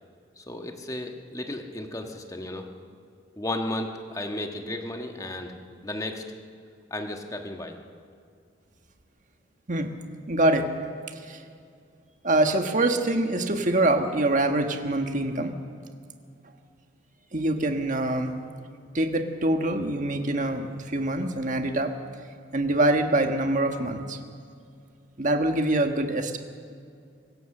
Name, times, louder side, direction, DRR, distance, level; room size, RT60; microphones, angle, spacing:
voice 1, 0.4-2.7 3.4-5.5 5.8-6.2 6.9-7.8, left 1 dB, 20° left, 4 dB, 1.5 m, -34 dB
voice 2, 10.3-10.7 11.3-11.4 12.2-15.5 17.3-18.3 18.9-21.9 22.5-24.2 25.2-26.4, right 1 dB, 40° right, 5 dB, 1.5 m, -24 dB
25.0 x 16.0 x 6.7 m, 2.4 s
head